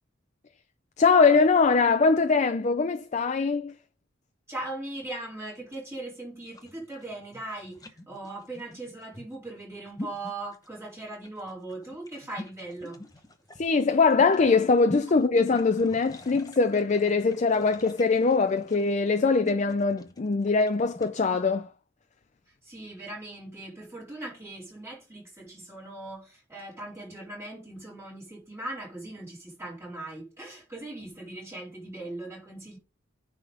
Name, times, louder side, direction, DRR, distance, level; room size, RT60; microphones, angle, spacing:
voice 1, 1.0-3.7 13.6-21.7, left 4 dB, 35° left, 0.5 m, -22 dB
voice 2, 4.5-13.0 22.5-32.8, right 2 dB, 15° right, 4.0 m, -39 dB
sound 1, 6.4-21.2, left 1 dB, 20° left, 0.8 m, -44 dB
9.4 x 3.6 x 5.1 m
head